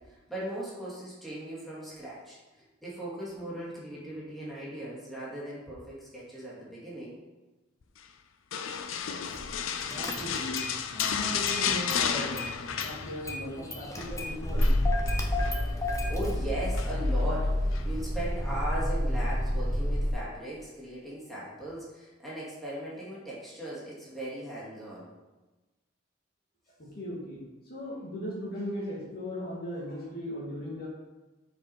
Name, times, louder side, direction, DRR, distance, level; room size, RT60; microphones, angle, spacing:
voice 1, 0.1-7.2 15.8-25.1, right 1 dB, ahead, -9 dB, 2.4 m, -38 dB
sound 1, 8.5-13.5 13.8-14.1 14.6-15.6 16.7-17.2 17.7-17.9, left 7 dB, 80° left, 0.5 m, -32 dB
Car / Engine starting, 9.3-9.6 9.9-10.7 11.0-12.0 12.4-20.1, left 1 dB, 15° left, 0.9 m, -29 dB
voice 2, 9.8-14.8 26.8-27.4 27.7-30.9, equal, 50° left, -5 dB, 2.0 m, -38 dB
7.4 x 4.8 x 4.7 m, 1.2 s
head